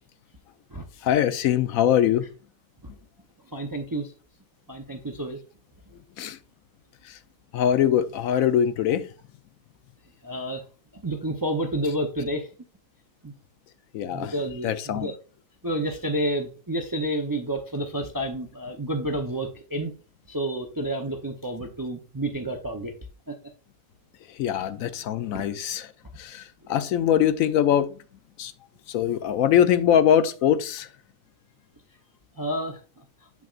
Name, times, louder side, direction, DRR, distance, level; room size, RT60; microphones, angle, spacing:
voice 1, 1.0-2.3 6.2-6.4 7.1-7.2 7.5-9.1 13.9-14.3 14.6-15.1 24.4-25.9 26.2-27.9 28.4-28.5 28.9-30.9, left 10 dB, 75° left, 1.0 m, -22 dB
voice 2, 3.5-4.1 4.7-5.4 10.2-10.6 10.9-12.5 13.2-13.3 14.1-15.1 15.6-19.9 20.3-22.9 23.3-23.4 24.5-24.7 25.3-25.4 26.7-26.8 32.4-33.0, right 1 dB, 30° right, 0.4 m, -30 dB
7.2 x 5.8 x 2.4 m
omnidirectional pair, 1.5 m